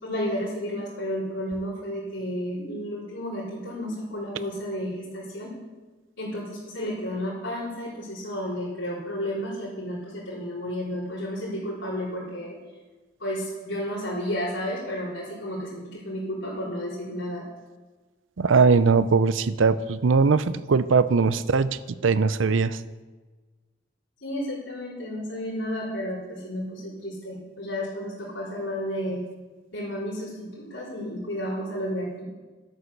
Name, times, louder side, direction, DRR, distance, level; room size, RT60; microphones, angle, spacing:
voice 1, 0.0-5.6 6.2-12.6 13.2-17.5 24.2-29.2 29.7-32.2, equal, 80° left, -10 dB, 4.3 m, -32 dB
voice 2, 18.4-21.7 22.0-22.7, right 4 dB, 90° right, 15 dB, 0.6 m, -20 dB
11.5 x 8.5 x 6.7 m, 1.3 s
head